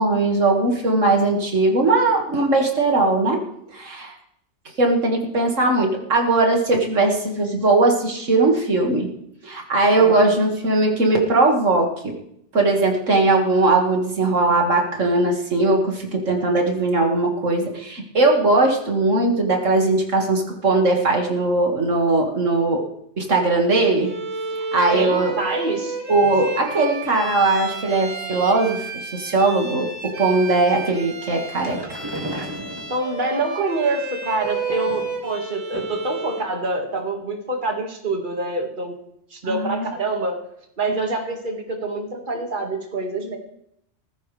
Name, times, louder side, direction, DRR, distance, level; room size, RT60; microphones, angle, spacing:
voice 1, 0.0-3.4 3.7-4.1 4.8-9.1 9.4-12.1 12.5-22.9 23.2-24.1 24.7-25.3 26.1-28.9 29.1-31.8 39.4-39.9, right 2 dB, 85° right, 1 dB, 2.4 m, -19 dB
voice 2, 10.0-10.3 24.9-26.0 32.9-38.9 39.3-40.4 40.8-43.4, right 2 dB, 40° right, 2 dB, 2.2 m, -26 dB
Bowed string instrument, 24.0-36.5, right 3 dB, 60° right, 2.8 m, -32 dB
sound 1, 31.3-33.4 34.4-35.3 35.7-36.1 36.4-36.5 36.9-37.0, right 1 dB, 20° right, 2.5 m, -35 dB
18.0 x 15.0 x 3.4 m, 0.74 s
omnidirectional pair, 1.3 m